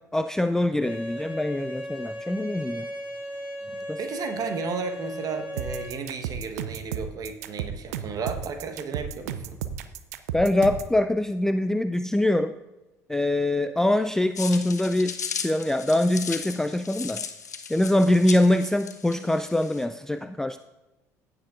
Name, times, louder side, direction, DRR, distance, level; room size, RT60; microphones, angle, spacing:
voice 1, 0.1-2.9 3.9-4.0 10.3-12.5 13.1-15.1 15.4-17.2 17.7-20.6, left 1 dB, 5° left, 9 dB, 0.3 m, -23 dB
Bowed string instrument, 0.8-5.9, equal, 20° right, 3.3 m, -36 dB
voice 2, 3.6-9.6, right 5 dB, 45° right, 6 dB, 1.2 m, -34 dB
sound 1, 5.6-10.9, right 9 dB, 70° right, 0.5 m, -33 dB
sound 2, 14.3-19.8, left 6 dB, 90° left, 0.5 m, -36 dB
16.0 x 6.8 x 2.5 m, 1.0 s
figure-of-eight pair, 60°, 9 cm